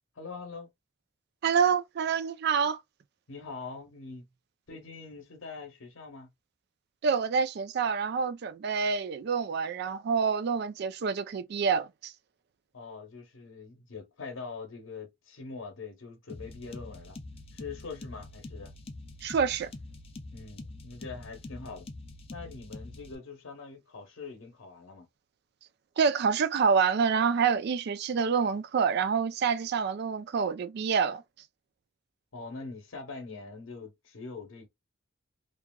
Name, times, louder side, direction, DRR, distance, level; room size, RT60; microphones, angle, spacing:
voice 1, 0.2-0.7 3.3-4.3 4.7-6.3 12.7-17.2 17.5-18.7 20.3-21.9 22.3-25.1 32.3-34.7, left 4 dB, 90° left, 0.8 m, -43 dB
voice 2, 1.4-2.8 7.0-12.1 19.2-19.7 26.0-31.2, right 6 dB, 55° right, 0.3 m, -27 dB
sound 1, 16.3-23.2, left 2 dB, 30° left, 0.5 m, -45 dB
2.8 x 2.4 x 2.2 m
head